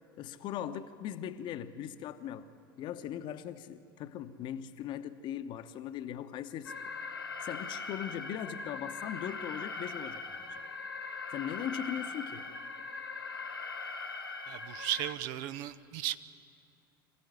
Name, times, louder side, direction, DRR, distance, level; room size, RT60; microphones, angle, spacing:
voice 1, 0.2-2.5 2.8-6.7 7.4-10.4 11.3-12.5, left 10 dB, 40° left, 1.1 m, -39 dB
Alarm, 6.6-15.1, left 4 dB, 80° left, 1.8 m, -41 dB
voice 2, 14.5-16.2, right 13 dB, 55° right, 0.8 m, -35 dB
26.5 x 15.5 x 9.3 m
figure-of-eight pair, 75°, 12 cm